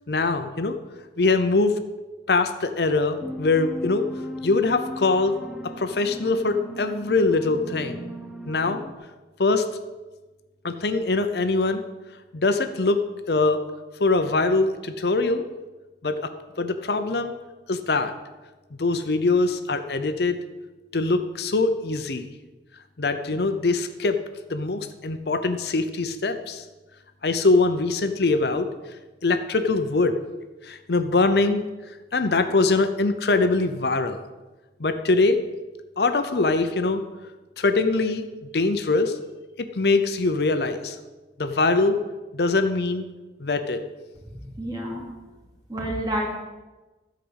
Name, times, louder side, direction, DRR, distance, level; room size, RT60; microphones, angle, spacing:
voice 1, 0.1-0.8 1.2-1.7 2.3-4.0 4.4-5.3 5.8-8.1 8.5-8.8 9.4-9.7 10.6-11.8 12.3-13.0 13.3-13.6 14.0-15.4 16.0-16.2 16.6-17.3 17.7-18.1 18.8-20.4 20.9-22.3 23.0-24.2 24.5-26.6 27.2-28.7 29.2-30.1 30.6-31.6 32.1-34.2 34.8-35.4 36.0-37.0 37.6-38.2 38.5-39.2 39.7-41.0 41.4-42.0 42.3-43.0 43.4-43.8, left 3 dB, 65° left, 8 dB, 0.7 m, -22 dB
sound 1, 3.2-8.9, equal, 5° right, 0.6 m, -37 dB
voice 2, 44.3-45.1 45.7-46.3, equal, 20° right, -2 dB, 2.7 m, -29 dB
13.0 x 5.1 x 8.0 m, 1.2 s
head